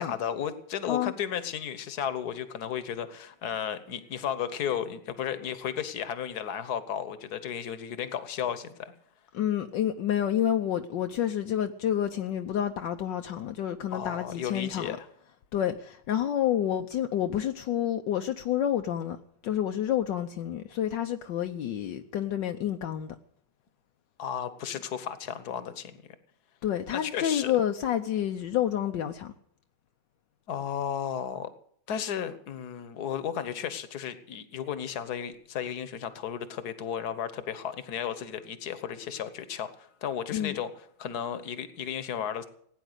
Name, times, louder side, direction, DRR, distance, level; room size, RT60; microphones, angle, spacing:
voice 1, 0.0-8.9 13.9-15.1 24.2-26.0 26.9-27.6 30.5-31.5 31.9-42.5, left 8 dB, 60° left, 1.6 m, -34 dB
voice 2, 9.3-15.0 15.5-19.2 19.4-23.1 26.6-29.3 40.3-40.5, left 10 dB, 75° left, 1.5 m, -29 dB
17.5 x 9.6 x 8.0 m
omnidirectional pair, 2.0 m